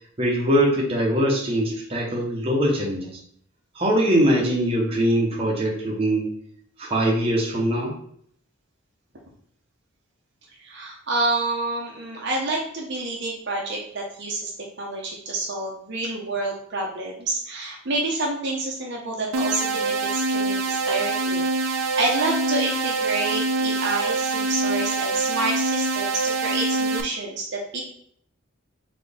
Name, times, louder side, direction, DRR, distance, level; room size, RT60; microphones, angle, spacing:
voice 1, 0.2-3.2 3.7-6.3 6.8-7.9, equal, 25° right, -3 dB, 0.9 m, -22 dB
voice 2, 10.6-14.5 14.8-27.8, right 2 dB, 55° right, -1 dB, 0.8 m, -28 dB
sound 1, 19.3-27.0, right 3 dB, 85° right, 0.6 m, -25 dB
4.2 x 2.9 x 3.5 m, 0.64 s
head